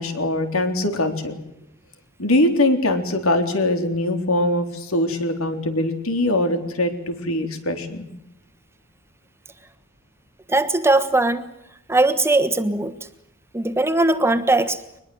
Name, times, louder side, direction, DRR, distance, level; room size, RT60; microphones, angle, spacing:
voice 1, 0.0-1.4 2.2-8.1, left 1 dB, 80° left, 6 dB, 3.8 m, -22 dB
voice 2, 10.5-11.4 11.9-12.9 13.5-14.8, right 2 dB, 10° right, 10 dB, 1.3 m, -19 dB
23.0 x 21.0 x 7.9 m, 0.82 s
head